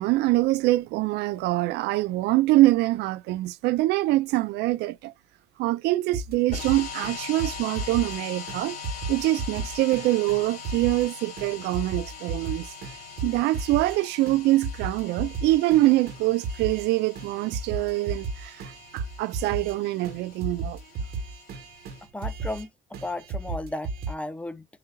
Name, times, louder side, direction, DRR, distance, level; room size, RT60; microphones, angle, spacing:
voice 1, 0.0-5.1 5.6-8.8 9.1-12.7 13.2-20.8, right 17 dB, 85° right, 0.4 m, -24 dB
sound 1, 6.1-8.2 8.5-8.6 8.8-11.1 11.4-14.0 14.3-16.9 17.2-19.8 20.0-20.2 20.4-22.7 22.9-24.1, right 3 dB, 70° right, 1.4 m, -35 dB
sound 2, 6.5-22.1, left 7 dB, 55° left, 2.5 m, -42 dB
voice 2, 22.1-22.7 23.0-24.6, left 1 dB, 5° left, 0.6 m, -34 dB
7.5 x 2.7 x 2.3 m
cardioid pair, 110°, 17 cm